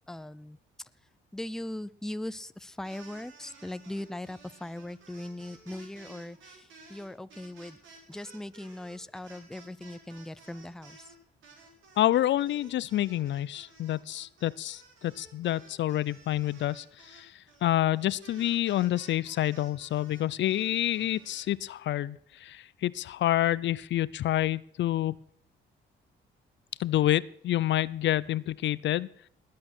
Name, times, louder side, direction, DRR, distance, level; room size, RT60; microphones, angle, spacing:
voice 1, 0.1-0.9 1.3-7.8 8.1-11.1, left 1 dB, ahead, 15 dB, 0.5 m, -40 dB
sound 1, 2.7-11.1 11.4-21.5, right 4 dB, 75° right, 5.7 m, -54 dB
voice 2, 12.0-17.3 17.6-25.2 26.8-29.1, left 13 dB, 65° left, 20 dB, 0.6 m, -28 dB
20.0 x 8.6 x 6.2 m, 0.65 s
cardioid pair, 90°, 20 cm